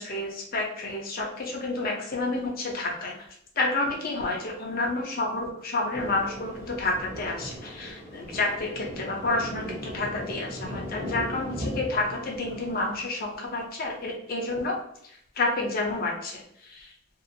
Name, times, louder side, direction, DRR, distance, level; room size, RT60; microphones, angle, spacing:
voice 1, 0.0-3.1 3.6-14.8 15.4-16.9, left 2 dB, 50° left, 0 dB, 0.6 m, -29 dB
Thunder, 5.9-13.0, equal, 40° right, 1.0 m, -38 dB
2.7 x 2.4 x 2.5 m, 0.72 s
head